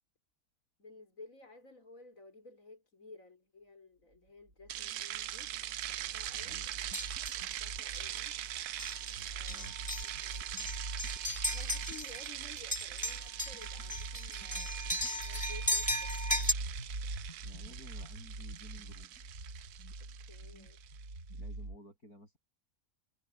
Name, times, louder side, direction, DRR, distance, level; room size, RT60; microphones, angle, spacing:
voice 1, 0.8-5.5 5.9-6.6 7.4-8.4 9.3-9.6 10.0-10.5 11.3-16.6 20.0-20.8, left 3 dB, 60° left, 5.2 m, -55 dB
sound 1, 4.6-21.8, right 2 dB, 65° right, 5.7 m, -44 dB
sound 2, 4.7-21.0, right 12 dB, 85° right, 1.2 m, -42 dB
sound 3, 6.9-7.4 7.9-8.1 8.8-9.1 9.5-12.3 12.6-16.5, equal, 5° left, 2.3 m, -36 dB
voice 2, 17.4-19.1 21.3-22.4, left 1 dB, 75° left, 8.7 m, -55 dB
omnidirectional pair, 1.6 m